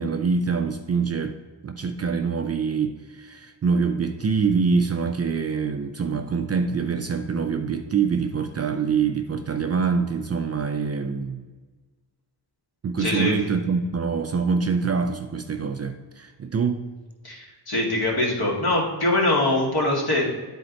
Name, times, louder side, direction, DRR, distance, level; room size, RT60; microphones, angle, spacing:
voice 1, 0.0-1.3 1.6-11.4 12.8-16.8, right 5 dB, 35° right, 6 dB, 0.4 m, -25 dB
voice 2, 13.0-13.3 17.2-20.2, left 1 dB, 55° left, -2 dB, 2.4 m, -23 dB
10.0 x 4.2 x 4.0 m, 1.3 s
cardioid pair, 105°, 46 cm